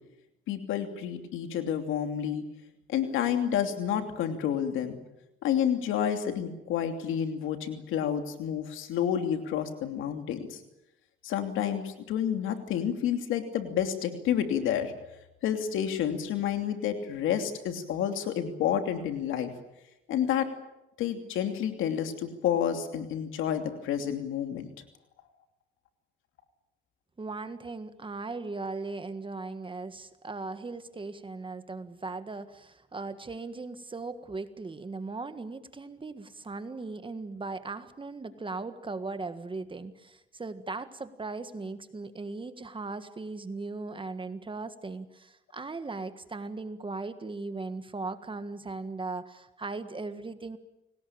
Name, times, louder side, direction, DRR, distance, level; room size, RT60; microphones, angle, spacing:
voice 1, 0.5-2.4 2.9-5.0 5.4-10.6 11.2-14.9 15.4-19.5 20.1-20.5 21.0-24.7, left 9 dB, 90° left, 6 dB, 2.9 m, -29 dB
voice 2, 27.2-50.6, right 3 dB, 25° right, 10 dB, 1.7 m, -38 dB
29.0 x 19.0 x 8.8 m, 0.93 s
cardioid pair, 90°, 20 cm